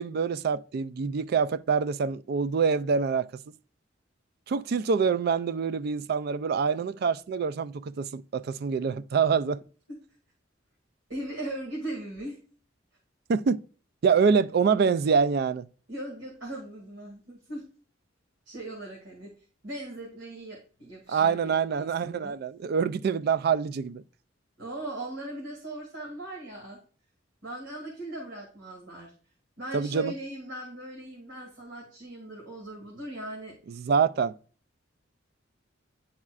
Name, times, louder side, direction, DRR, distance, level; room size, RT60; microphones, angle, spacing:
voice 1, 0.0-3.3 4.5-9.6 13.3-13.6 14.0-15.7 21.1-24.0 29.7-30.1 33.8-34.3, right 6 dB, 55° right, 0.3 m, -25 dB
voice 2, 11.1-12.4 15.9-17.7 18.5-19.3 19.6-22.4 24.6-26.8 27.4-29.1 29.6-33.8, right 1 dB, 85° right, 2.1 m, -39 dB
10.5 x 4.3 x 2.4 m
head